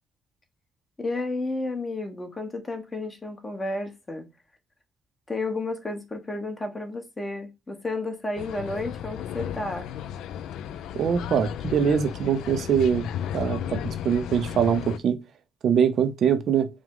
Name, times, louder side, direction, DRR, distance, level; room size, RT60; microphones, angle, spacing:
voice 1, 1.0-4.3 5.3-9.9, left 2 dB, 25° left, 1.0 m, -32 dB
sound 1, 8.4-15.0, left 10 dB, 85° left, 0.3 m, -34 dB
voice 2, 11.0-13.1 13.3-15.2 15.6-16.7, right 7 dB, 65° right, 0.5 m, -23 dB
4.7 x 2.1 x 3.7 m
cardioid pair, 90°, 0 cm